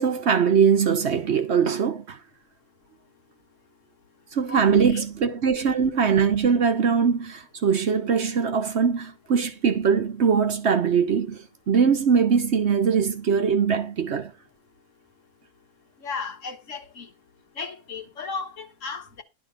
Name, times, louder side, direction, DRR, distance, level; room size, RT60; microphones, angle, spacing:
voice 1, 0.0-2.2 4.3-14.3, right 6 dB, 55° right, 1.1 m, -22 dB
voice 2, 4.5-5.1 16.0-17.1 17.6-19.2, left 4 dB, 60° left, 1.7 m, -35 dB
11.5 x 4.0 x 6.5 m
omnidirectional pair, 1.5 m